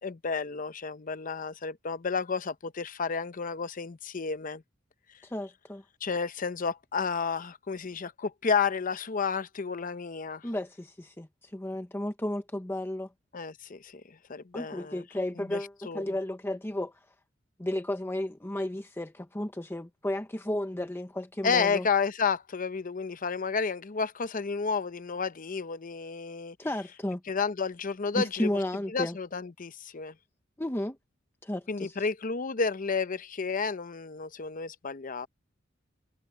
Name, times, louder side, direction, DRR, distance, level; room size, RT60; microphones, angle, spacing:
voice 1, 0.0-4.6 6.0-10.5 13.3-15.0 15.4-16.1 21.4-26.6 27.3-28.5 28.9-30.1 31.7-35.3, left 5 dB, 45° left, 0.7 m, -31 dB
voice 2, 5.2-5.8 10.4-13.1 14.5-16.9 17.6-21.9 26.6-27.2 28.1-29.2 30.6-31.0 31.4-32.0, left 1 dB, 10° left, 0.8 m, -33 dB
head